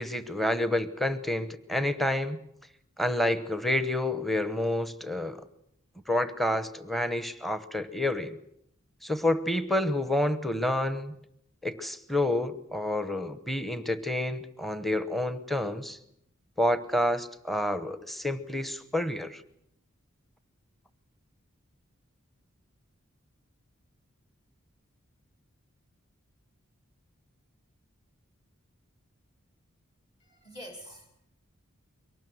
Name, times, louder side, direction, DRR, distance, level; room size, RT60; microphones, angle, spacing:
voice 1, 0.0-2.4 3.0-5.4 6.1-8.4 9.0-11.1 11.6-16.0 16.6-19.4, left 1 dB, ahead, 11 dB, 1.0 m, -29 dB
voice 2, 30.2-31.1, equal, 30° left, 4 dB, 2.7 m, -45 dB
23.5 x 19.0 x 7.9 m, 0.75 s
head